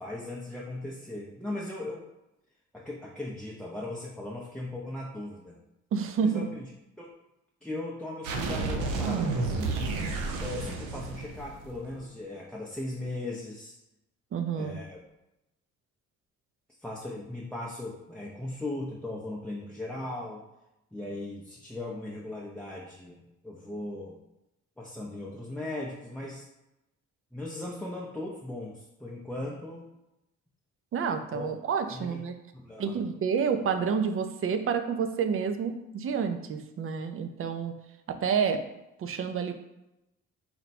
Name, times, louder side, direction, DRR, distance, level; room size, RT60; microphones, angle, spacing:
voice 1, 0.0-2.1 2.7-5.6 6.2-6.6 7.0-7.1 7.6-9.7 10.4-13.7 14.5-15.0 16.8-20.4 20.9-24.2 24.8-26.4 27.3-29.9 31.3-31.5 31.9-32.2 32.5-33.0, left 2 dB, 5° left, -4 dB, 0.6 m, -38 dB
voice 2, 5.9-6.5 14.3-14.8 30.9-32.3 32.8-37.7 38.1-38.6 39.0-39.5, right 6 dB, 45° right, 8 dB, 0.5 m, -29 dB
sound 1, 8.2-11.9, right 3 dB, 85° right, 0.6 m, -31 dB
4.3 x 2.2 x 4.1 m, 0.91 s
cardioid pair, 90°, 30 cm